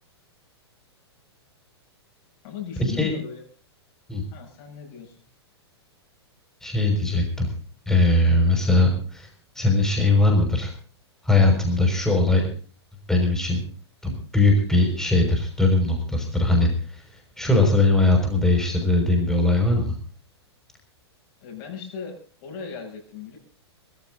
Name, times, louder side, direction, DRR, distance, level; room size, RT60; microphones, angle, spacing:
voice 1, 2.4-3.4 4.3-5.1 21.4-23.4, left 7 dB, 45° left, 2 dB, 7.2 m, -37 dB
voice 2, 6.6-7.5 7.9-9.3 9.6-10.7 11.2-12.5 13.1-13.6 14.0-17.0 17.4-19.9, left 2 dB, 5° left, 1 dB, 6.0 m, -20 dB
20.0 x 14.5 x 4.0 m, 0.42 s
figure-of-eight pair, 105°, 14 cm